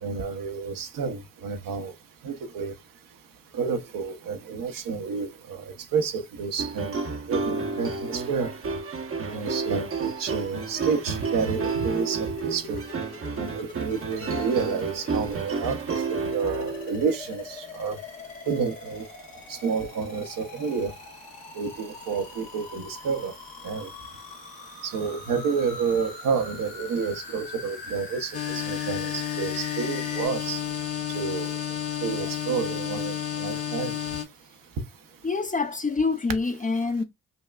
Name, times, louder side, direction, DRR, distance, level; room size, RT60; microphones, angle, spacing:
voice 1, 0.0-1.9 2.2-2.7 3.5-7.0 7.3-8.5 9.2-12.8 13.4-18.0 18.5-19.1 19.5-20.9 21.5-23.3 23.6-23.9 24.8-30.6 31.1-31.5 32.0-34.0, right 5 dB, 70° right, 0.8 m, -29 dB
sound 1, 6.6-17.0, right 4 dB, 40° right, 0.7 m, -31 dB
sound 2, 10.3-30.3, left 4 dB, 85° left, 1.4 m, -43 dB
sound 3, 28.3-34.2, left 10 dB, 40° left, 1.1 m, -31 dB
voice 2, 35.2-37.0, left 4 dB, 25° left, 0.5 m, -26 dB
5.3 x 2.2 x 2.3 m
supercardioid pair, 50°, 35 cm